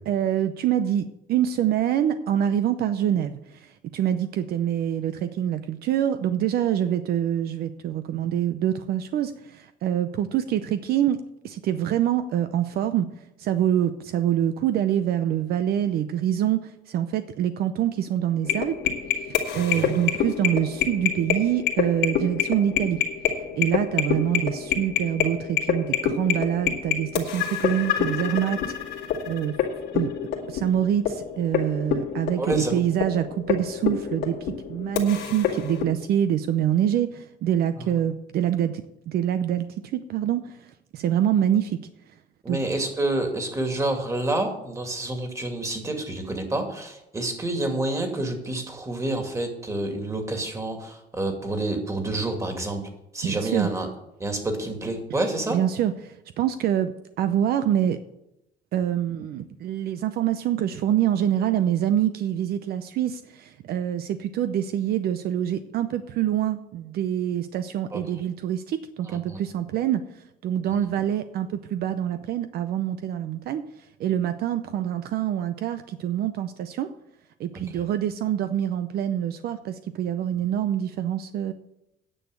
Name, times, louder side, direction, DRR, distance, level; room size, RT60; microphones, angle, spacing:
voice 1, 0.1-11.2 11.4-13.1 13.4-18.8 19.5-23.0 23.5-28.6 28.9-29.6 29.9-30.1 30.5-39.7 39.9-40.7 40.9-41.8 42.5-42.6 53.2-53.7 55.5-56.9 57.2-58.0 58.7-73.6 74.0-76.9 77.4-81.5, right 10 dB, 65° right, 10 dB, 0.6 m, -25 dB
sound 1, 18.4-35.8, left 9 dB, 85° left, 2.1 m, -27 dB
voice 2, 32.4-32.8 37.8-37.9 42.4-52.8 53.1-53.9 54.2-55.6 67.9-68.0 69.1-69.4 70.7-70.9, right 2 dB, 20° right, 4 dB, 2.4 m, -28 dB
10.0 x 6.3 x 8.1 m, 0.86 s
cardioid pair, 110°, 17 cm